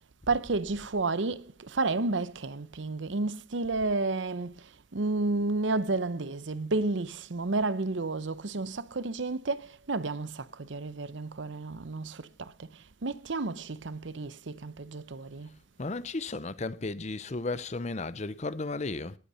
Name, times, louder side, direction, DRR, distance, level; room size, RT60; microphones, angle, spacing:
voice 1, 0.3-15.5, right 3 dB, 75° right, 0.8 m, -31 dB
voice 2, 15.8-19.2, left 3 dB, 35° left, 0.7 m, -34 dB
19.0 x 8.4 x 5.6 m
head